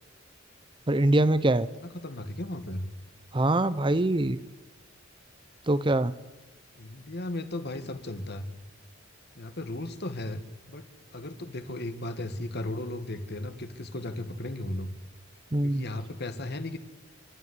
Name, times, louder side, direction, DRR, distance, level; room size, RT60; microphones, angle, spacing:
voice 1, 0.9-1.7 3.3-4.4 5.7-6.1 15.5-15.9, right 1 dB, 25° right, 15 dB, 0.7 m, -23 dB
voice 2, 1.8-2.9 6.8-8.5 9.4-10.4 10.7-14.9 15.6-16.8, left 1 dB, 55° left, 10 dB, 1.9 m, -36 dB
30.0 x 13.0 x 9.7 m, 1.2 s
head